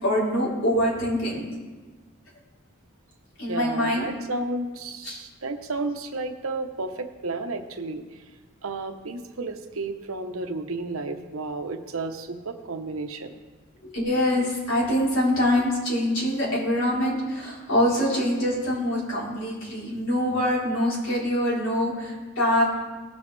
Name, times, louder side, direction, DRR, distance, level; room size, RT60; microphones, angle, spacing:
voice 1, 0.0-1.4 3.4-4.1 5.0-5.2 13.8-22.6, left 1 dB, 70° left, -6 dB, 3.7 m, -24 dB
voice 2, 3.5-8.2 8.6-13.3, right 3 dB, 85° right, 6 dB, 0.9 m, -32 dB
18.0 x 7.0 x 3.3 m, 1.3 s
head